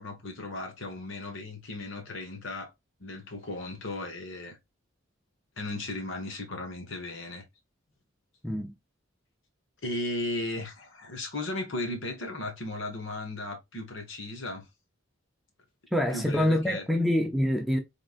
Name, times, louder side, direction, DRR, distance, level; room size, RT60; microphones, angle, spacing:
voice 1, 0.0-2.7 3.0-4.6 5.6-7.4 9.8-14.7 16.1-16.8, left 2 dB, 65° left, 1.3 m, -36 dB
voice 2, 8.4-8.7 15.9-17.8, left 1 dB, ahead, 0.5 m, -26 dB
3.8 x 3.6 x 2.4 m
head